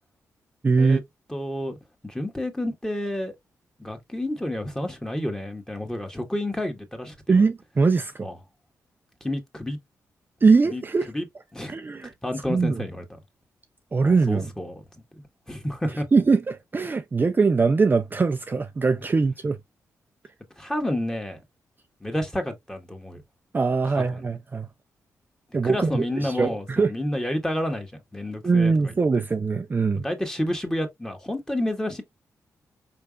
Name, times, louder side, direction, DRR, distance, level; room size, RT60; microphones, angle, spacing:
voice 1, 0.6-1.0 7.3-8.3 10.4-11.1 11.7-12.1 12.5-12.8 13.9-14.5 16.1-19.6 23.5-24.7 25.5-26.9 28.4-30.0, right 4 dB, 30° right, 0.4 m, -22 dB
voice 2, 1.3-1.8 2.0-3.3 3.8-7.4 8.2-8.3 9.2-9.8 10.6-10.8 11.1-11.3 11.5-11.7 12.2-13.0 14.0-14.8 15.5-16.1 20.6-21.4 22.0-23.2 24.1-24.2 25.6-28.9 30.0-32.0, left 1 dB, 10° left, 1.4 m, -30 dB
4.7 x 3.3 x 2.3 m
cardioid pair, 60°, 6 cm